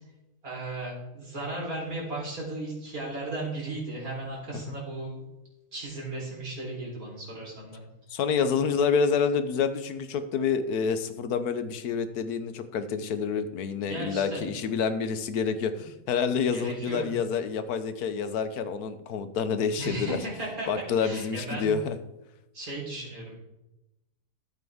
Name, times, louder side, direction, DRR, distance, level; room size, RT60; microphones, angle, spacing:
voice 1, 0.4-5.2 5.7-7.8 13.9-14.4 16.5-17.1 19.8-20.7 21.0-21.7 22.5-23.3, right 2 dB, 70° right, -4 dB, 4.3 m, -35 dB
voice 2, 8.1-20.2 20.7-22.0, left 6 dB, 85° left, 10 dB, 1.3 m, -28 dB
13.0 x 8.0 x 3.5 m, 0.92 s
omnidirectional pair, 1.6 m